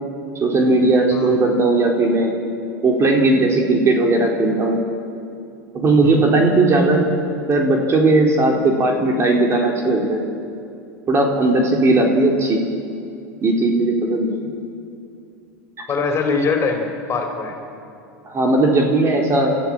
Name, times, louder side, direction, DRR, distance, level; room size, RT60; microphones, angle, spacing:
voice 1, 0.4-2.3 2.8-4.8 5.7-7.0 7.5-10.2 11.1-12.6 13.4-14.5 18.3-19.6, right 2 dB, 30° right, 1 dB, 3.9 m, -17 dB
voice 2, 15.9-17.5, left 4 dB, 30° left, 3 dB, 4.9 m, -22 dB
29.0 x 14.0 x 8.8 m, 2.6 s
hypercardioid pair, 110°, 9 cm